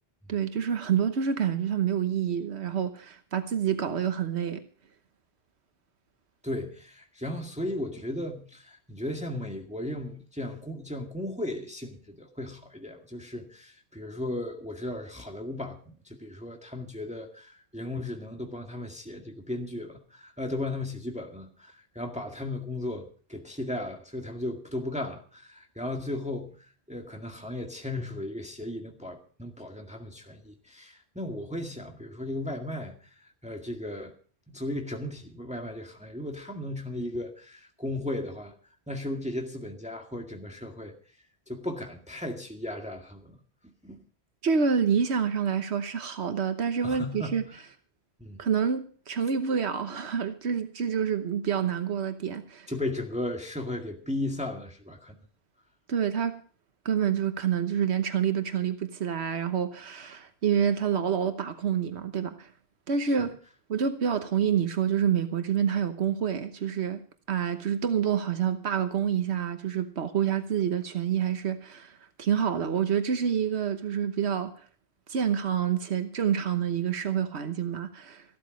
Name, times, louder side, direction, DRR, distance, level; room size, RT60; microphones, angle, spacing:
voice 1, 0.3-4.6 44.4-47.5 48.4-52.7 55.9-56.4 56.8-62.5 62.9-63.4 63.7-67.0 67.3-74.6 75.1-78.2, right 7 dB, 90° right, 1.4 m, -27 dB
voice 2, 6.4-34.1 34.5-38.5 38.9-40.9 41.5-43.4 43.8-44.0 46.8-47.6 48.2-48.4 52.7-55.2 63.2-63.3, left 1 dB, 5° right, 1.9 m, -36 dB
15.0 x 13.0 x 5.2 m
omnidirectional pair, 1.1 m